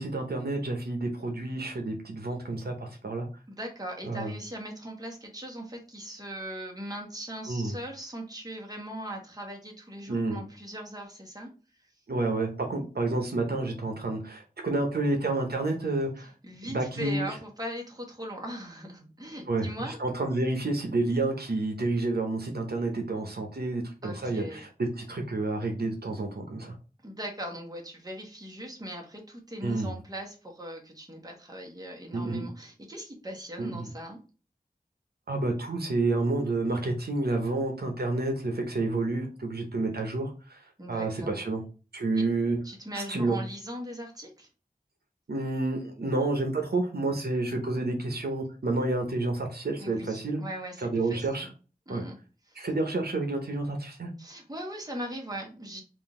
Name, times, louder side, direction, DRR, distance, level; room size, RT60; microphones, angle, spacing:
voice 1, 0.0-3.3 4.1-4.3 7.5-7.7 10.1-10.4 12.1-16.3 16.6-17.2 19.5-26.8 29.6-29.9 32.1-32.5 33.6-33.9 35.3-40.6 40.9-41.6 41.9-42.6 42.9-43.4 45.3-50.4 50.8-51.5 51.9-52.0 52.6-54.1, right 2 dB, 90° right, 3 dB, 0.8 m, -29 dB
voice 2, 3.5-11.5 11.8-11.9 16.2-20.0 24.0-24.6 27.0-34.2 40.8-41.4 42.1-42.2 42.6-44.5 49.8-51.5 51.9-52.2 52.5-52.7 54.2-55.8, equal, 25° right, 0 dB, 1.2 m, -40 dB
3.8 x 2.5 x 3.6 m, 0.35 s
wide cardioid pair, 50°, 16 cm